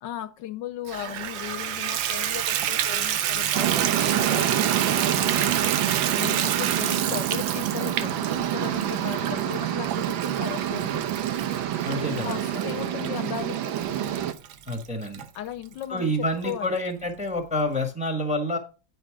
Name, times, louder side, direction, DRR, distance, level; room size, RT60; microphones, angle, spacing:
voice 1, 0.0-11.0 12.1-13.7 15.3-16.8, left 11 dB, 75° left, 13 dB, 1.2 m, -37 dB
Water tap faucet / Bathtub (filling or washing), 0.9-15.2 15.8-15.9 16.4-16.5 16.8-16.9, right 11 dB, 65° right, 1.1 m, -29 dB
sound 1, 3.5-14.3, right 10 dB, 85° right, 1.5 m, -27 dB
voice 2, 11.8-12.4 14.7-15.2 15.9-18.6, left 1 dB, 5° right, 6 dB, 1.0 m, -28 dB
9.4 x 5.1 x 4.6 m, 0.34 s
omnidirectional pair, 2.1 m